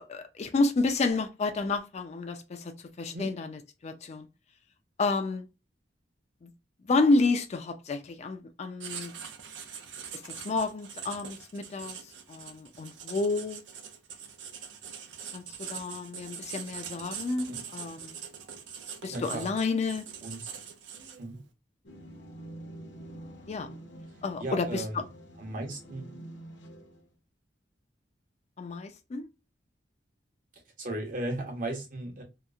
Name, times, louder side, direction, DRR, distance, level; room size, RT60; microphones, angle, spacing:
voice 1, 0.0-4.3 5.0-5.5 6.4-6.5 6.9-9.1 10.1-12.0 12.3-13.6 15.3-18.2 19.0-20.1 23.5-23.7 24.2-25.1 28.6-29.3, left 3 dB, 40° left, 0.3 m, -30 dB
Writing, 8.8-21.4, right 7 dB, 75° right, 0.5 m, -43 dB
voice 2, 19.1-19.5 20.2-20.4 21.2-21.4 24.4-25.0 25.4-26.1 30.8-32.2, right 1 dB, 50° right, 0.9 m, -36 dB
sound 1, 21.8-27.1, right 1 dB, 70° left, 0.7 m, -47 dB
2.9 x 2.0 x 2.3 m
head